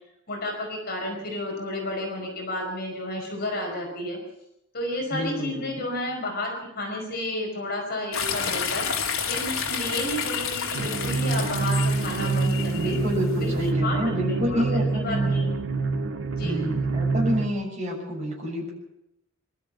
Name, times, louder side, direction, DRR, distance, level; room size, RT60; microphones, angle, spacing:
voice 1, 0.3-4.2 4.7-12.9 13.4-15.5 16.3-16.6, left 1 dB, 50° left, 1 dB, 5.1 m, -32 dB
voice 2, 5.1-5.9 12.7-15.4 16.4-18.7, equal, 35° right, -2 dB, 6.8 m, -29 dB
sound 1, 8.1-13.7, left 6 dB, 80° left, 2.9 m, -30 dB
sound 2, 10.7-17.5, right 3 dB, 65° right, 2.1 m, -26 dB
24.0 x 13.0 x 8.4 m, 0.82 s
head